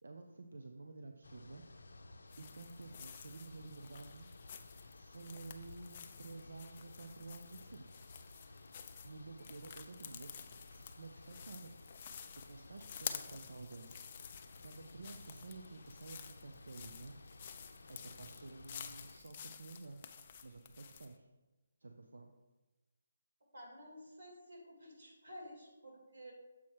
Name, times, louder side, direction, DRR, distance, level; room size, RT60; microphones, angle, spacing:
voice 1, 0.0-1.6 2.4-4.3 4.9-8.0 9.0-11.7 12.5-14.0 14.6-17.1 17.9-20.1 20.4-21.3 21.8-22.3, right 3 dB, 90° right, 4 dB, 0.5 m, -51 dB
sound 1, 1.2-19.2, left 2 dB, 90° left, 0.5 m, -56 dB
sound 2, 2.3-21.2, left 8 dB, 25° left, 0.3 m, -51 dB
voice 2, 23.5-26.3, equal, 65° right, -2 dB, 2.3 m, -52 dB
7.0 x 4.3 x 4.7 m, 1.1 s
hypercardioid pair, 175°, 0 cm